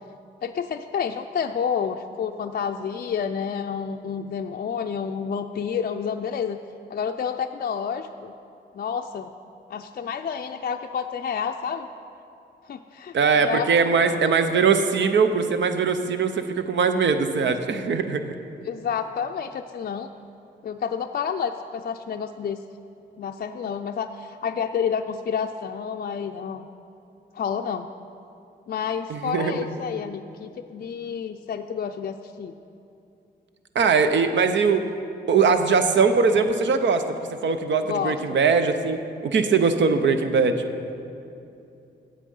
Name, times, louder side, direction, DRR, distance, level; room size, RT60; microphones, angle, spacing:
voice 1, 0.4-6.6 6.9-8.3 8.7-9.3 9.7-11.9 12.6-13.7 14.2-14.6 18.6-20.1 20.6-22.6 23.2-26.7 27.3-27.9 28.7-32.5 37.8-38.4, left 7 dB, 50° left, 5 dB, 0.4 m, -29 dB
voice 2, 13.1-18.3 29.1-29.6 33.7-34.8 35.3-37.0 37.4-39.0 39.2-40.7, right 5 dB, 70° right, 8 dB, 0.7 m, -21 dB
8.2 x 7.5 x 5.4 m, 2.7 s
supercardioid pair, 45°, 20 cm